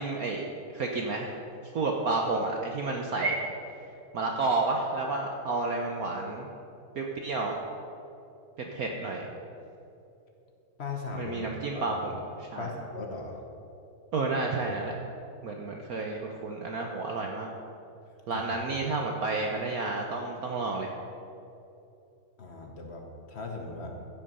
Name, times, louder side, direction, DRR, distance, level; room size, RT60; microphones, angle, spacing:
voice 1, 0.0-1.3 1.7-3.4 4.1-6.5 7.0-7.5 8.7-9.3 11.1-12.7 14.1-15.0 15.4-17.5 18.3-20.9, right 3 dB, 65° right, 1 dB, 0.9 m, -31 dB
voice 2, 10.8-12.0 12.6-13.4 18.3-18.5 22.4-24.0, left 3 dB, 55° left, 2 dB, 0.7 m, -38 dB
15.0 x 5.9 x 5.4 m, 2.8 s
omnidirectional pair, 2.4 m